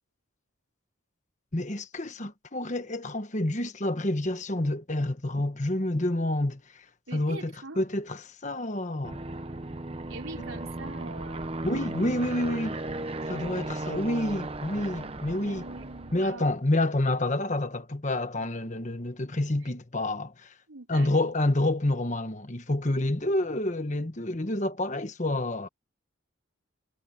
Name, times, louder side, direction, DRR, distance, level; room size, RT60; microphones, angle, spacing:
voice 1, 1.5-6.8 7.1-9.2 10.4-10.5 11.6-12.8 13.3-15.7 16.1-20.5 20.9-25.7, left 1 dB, 35° left, 1.4 m, -28 dB
voice 2, 7.1-7.8 10.1-11.6 15.4-16.5 18.4-18.5 20.7-21.3, right 3 dB, 85° right, 4.3 m, -43 dB
Aircraft, 9.0-16.4, right 2 dB, 30° right, 1.0 m, -36 dB
head